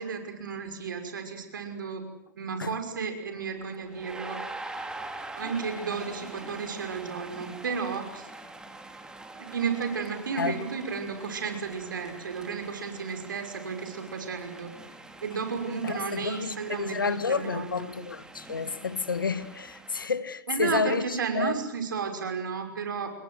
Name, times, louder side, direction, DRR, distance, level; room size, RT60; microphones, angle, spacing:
voice 1, 0.0-2.0 2.4-4.4 5.4-8.3 9.4-14.7 15.2-17.9 20.5-23.1, right 5 dB, 75° right, 5.8 m, -33 dB
sound 1, 3.4-20.1, right 2 dB, 5° right, 3.3 m, -44 dB
voice 2, 15.8-21.6, left 5 dB, 90° left, 1.7 m, -30 dB
28.5 x 22.0 x 8.0 m
hypercardioid pair, 105°, 11 cm